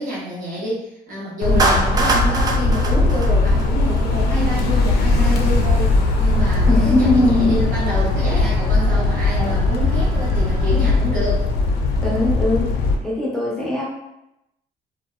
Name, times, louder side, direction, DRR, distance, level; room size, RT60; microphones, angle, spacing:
voice 1, 0.0-11.4, right 1 dB, 55° right, -6 dB, 0.8 m, -28 dB
sound 1, 1.4-12.9, left 3 dB, 80° left, 0.4 m, -19 dB
Clapping, 1.6-4.0, right 2 dB, 25° right, 0.3 m, -22 dB
sound 2, 5.2-11.1, equal, 80° right, 1.0 m, -31 dB
voice 2, 6.7-7.6 8.2-8.5 9.4-9.6 12.0-12.7 13.0-13.8, left 2 dB, 5° left, -6 dB, 0.7 m, -21 dB
2.6 x 2.1 x 2.3 m, 0.88 s
cardioid pair, 120°, 16 cm